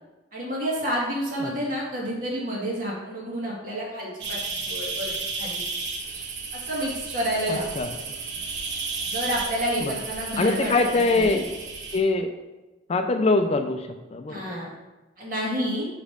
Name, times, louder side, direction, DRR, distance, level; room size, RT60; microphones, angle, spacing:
voice 1, 0.3-5.1 5.4-5.6 6.5-7.6 9.1-10.7 11.1-11.4 14.3-14.7 15.2-15.9, equal, 50° right, -4 dB, 2.0 m, -29 dB
sound 1, 4.2-12.0, right 4 dB, 75° right, 0.9 m, -33 dB
voice 2, 7.5-7.9 9.8-9.9 10.4-11.4 11.9-12.3 12.9-14.5, left 3 dB, 35° left, 6 dB, 0.4 m, -23 dB
5.1 x 5.1 x 5.0 m, 1.1 s
head